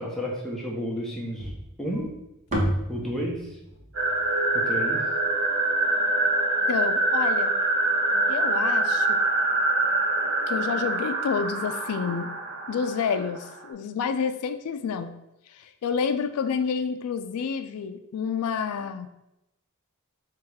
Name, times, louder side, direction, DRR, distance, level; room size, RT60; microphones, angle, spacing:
voice 1, 0.0-1.5 1.8-2.1 2.9-3.4 4.5-5.0, equal, ahead, -3 dB, 0.8 m, -31 dB
sound 1, 1.4-5.7, equal, 35° right, 0.9 m, -32 dB
sound 2, 3.9-13.6, right 2 dB, 55° right, 1.0 m, -25 dB
voice 2, 6.7-7.6 8.3-9.2 10.5-12.3 12.7-15.1 15.5-19.1, left 6 dB, 85° left, 9 dB, 0.4 m, -29 dB
3.5 x 3.0 x 4.8 m, 0.89 s
head